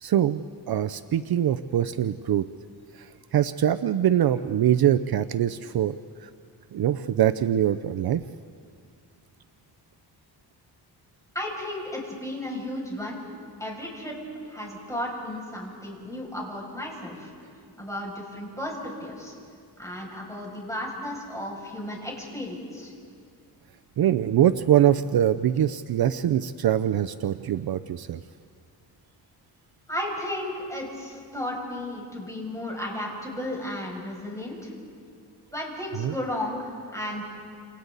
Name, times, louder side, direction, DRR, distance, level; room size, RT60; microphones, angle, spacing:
voice 1, 0.0-2.4 2.9-6.3 6.7-8.2 24.0-28.2 36.0-36.1, right 10 dB, 60° right, 11 dB, 0.6 m, -23 dB
voice 2, 11.3-13.2 13.6-14.2 14.5-17.3 17.8-19.3 19.8-22.9 29.9-34.7 35.5-37.2, left 1 dB, 5° left, -2 dB, 6.7 m, -34 dB
29.5 x 28.0 x 4.0 m, 2.2 s
cardioid pair, 105°, 42 cm